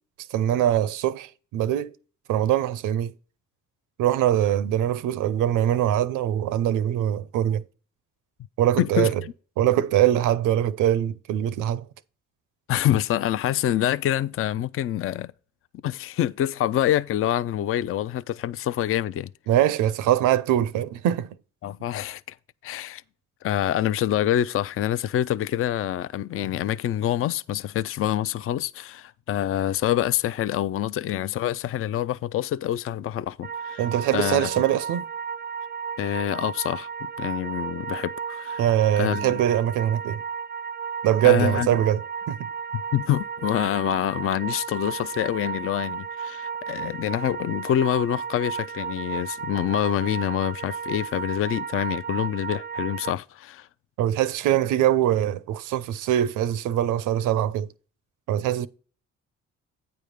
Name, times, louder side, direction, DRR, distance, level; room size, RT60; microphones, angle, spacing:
voice 1, 0.3-1.9 2.3-3.1 4.0-7.6 8.6-9.2 9.6-11.9 19.5-21.3 33.8-35.1 38.6-40.2 41.0-42.5 54.0-57.7 58.3-58.7, right 11 dB, 85° right, 0.6 m, -23 dB
voice 2, 8.8-9.1 12.7-15.3 15.8-19.3 21.6-22.4 22.6-23.0 23.4-33.8 34.1-34.5 36.0-36.9 37.2-38.6 39.0-39.4 41.2-41.7 42.9-53.7, left 11 dB, 45° left, 0.4 m, -26 dB
sound 1, 33.4-53.1, right 6 dB, 30° right, 0.4 m, -34 dB
9.2 x 3.5 x 6.5 m
cardioid pair, 90°, 30 cm